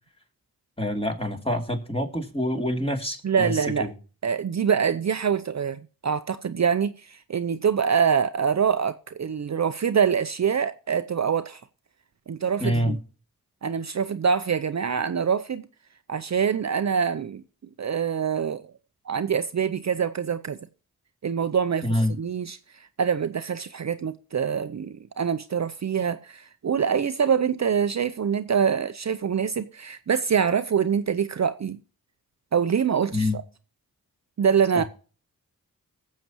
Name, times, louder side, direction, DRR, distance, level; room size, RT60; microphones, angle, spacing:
voice 1, 0.8-3.9 12.6-13.0 21.8-22.1 33.1-33.4, left 1 dB, 15° left, 2.8 m, -26 dB
voice 2, 3.2-3.9 4.2-11.6 12.3-13.0 13.6-15.7 16.1-17.4 17.8-18.7 19.1-20.6 21.2-31.8 32.5-33.3 34.4-34.8, right 7 dB, 50° right, 0.6 m, -25 dB
19.5 x 7.4 x 3.0 m
cardioid pair, 50°, 36 cm